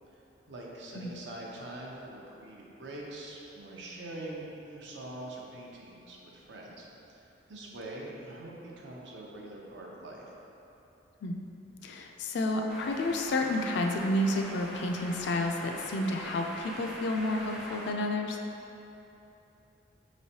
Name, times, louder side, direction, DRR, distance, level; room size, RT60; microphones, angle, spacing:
voice 1, 0.5-10.3, right 1 dB, 70° right, -3 dB, 0.7 m, -44 dB
voice 2, 11.8-18.4, left 1 dB, 65° left, 3 dB, 0.3 m, -30 dB
sound 1, 12.7-17.9, equal, 5° right, 0.5 m, -43 dB
5.2 x 3.1 x 2.8 m, 3.0 s
head